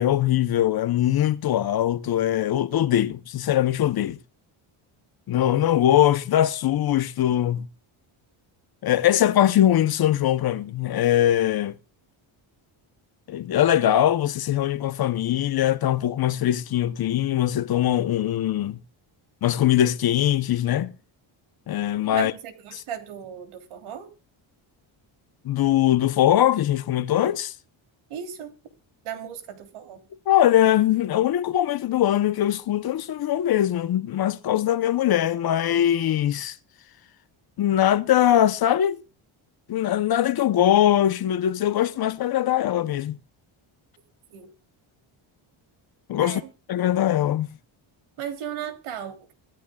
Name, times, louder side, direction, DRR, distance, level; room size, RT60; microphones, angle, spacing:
voice 1, 0.0-4.2 5.3-7.7 8.8-11.7 13.3-18.8 19.4-20.9 21.7-22.3 22.7-22.8 25.4-27.5 30.3-36.6 37.6-39.0 39.7-43.2 46.1-46.4 46.7-47.5, left 12 dB, 45° left, 0.8 m, -21 dB
voice 2, 22.1-24.1 28.1-28.5 29.0-30.0 44.3-44.5 46.2-46.5 48.2-49.3, right 9 dB, 75° right, 3.3 m, -36 dB
24.5 x 10.0 x 2.3 m
cardioid pair, 160°, 50 cm